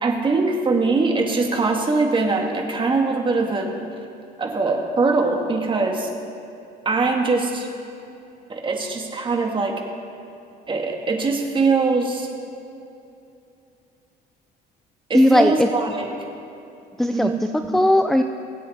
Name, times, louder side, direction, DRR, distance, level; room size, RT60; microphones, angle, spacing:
voice 1, 0.0-3.8 4.4-6.1 6.9-7.7 8.5-9.8 10.7-12.3 15.1-16.1 17.1-17.4 17.7-17.8, right 3 dB, 30° right, 2 dB, 1.9 m, -22 dB
voice 2, 15.1-15.7 17.0-18.2, left 1 dB, ahead, 7 dB, 0.4 m, -18 dB
21.5 x 8.2 x 4.2 m, 2.7 s
cardioid pair, 110°, 17 cm